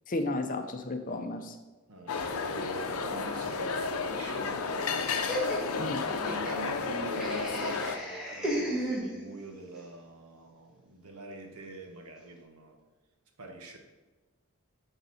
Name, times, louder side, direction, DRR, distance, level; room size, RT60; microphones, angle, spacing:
voice 1, 0.1-1.6 5.8-6.0, left 2 dB, 35° left, 7 dB, 0.6 m, -33 dB
voice 2, 1.9-5.3 6.2-12.8 13.4-13.8, right 1 dB, 85° right, 4 dB, 1.2 m, -44 dB
sound 1, 2.1-8.0, left 4 dB, 80° left, 0.6 m, -32 dB
Laughter, 5.3-9.5, right 1 dB, 5° right, 1.4 m, -35 dB
10.5 x 4.0 x 4.1 m, 1.2 s
head